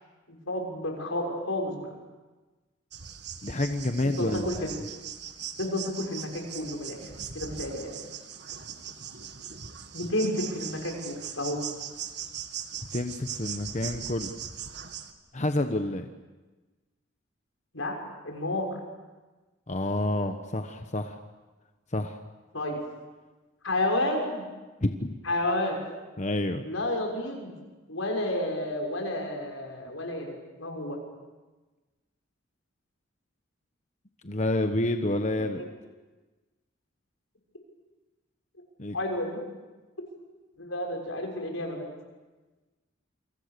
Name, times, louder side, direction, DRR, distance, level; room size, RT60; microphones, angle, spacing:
voice 1, 0.3-1.9 4.2-4.7 5.6-7.0 7.3-7.9 9.9-11.6 17.7-18.0 18.2-18.7 22.5-22.8 23.6-24.4 25.2-25.8 26.6-27.5 27.9-31.0 38.9-39.4 40.6-41.8, left 1 dB, 90° left, 1 dB, 6.5 m, -30 dB
sound 1, 2.9-15.1, right 8 dB, 55° right, 1.8 m, -40 dB
voice 2, 3.4-4.7 12.9-14.3 15.3-16.1 19.7-21.2 21.9-22.2 24.8-25.1 26.2-26.6 34.2-35.6 38.8-39.0, left 1 dB, 35° left, 7 dB, 1.1 m, -28 dB
28.5 x 25.0 x 6.9 m, 1.2 s
head